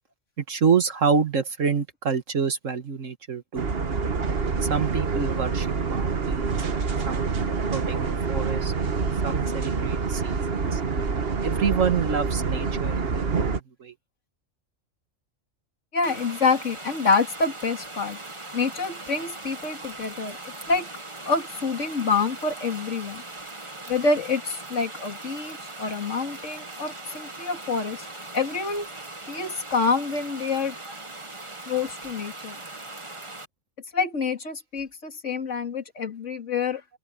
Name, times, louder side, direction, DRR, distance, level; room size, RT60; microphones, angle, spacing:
voice 1, 0.4-3.7 4.7-6.6 7.1-7.3 7.7-8.0 8.3-8.7 9.2-10.8 11.4-13.9, right 6 dB, 80° right, 2.0 m, -27 dB
sound 1, 3.6-13.6, right 5 dB, 50° right, 1.5 m, -26 dB
voice 2, 15.9-18.2 18.5-20.4 20.7-20.9 21.2-23.2 23.9-28.0 28.3-28.9 29.3-30.7 31.7-32.6 33.9-36.8, left 4 dB, 70° left, 2.9 m, -27 dB
sound 2, 16.0-33.4, right 2 dB, 25° right, 1.7 m, -40 dB
omnidirectional pair, 1.3 m